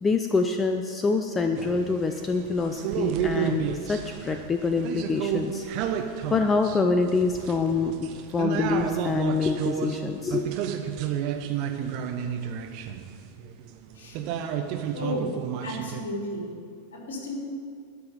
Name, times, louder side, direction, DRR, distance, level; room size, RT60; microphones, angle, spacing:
voice 1, 0.0-5.6 6.3-10.6, left 4 dB, 15° left, 6 dB, 0.6 m, -26 dB
sound 1, 1.5-16.0, right 8 dB, 45° right, 0.9 m, -31 dB
voice 2, 14.9-15.3 15.6-16.5 16.9-17.4, left 1 dB, 60° left, -2 dB, 3.3 m, -33 dB
12.0 x 5.8 x 9.0 m, 2.2 s
figure-of-eight pair, 90°, 0 cm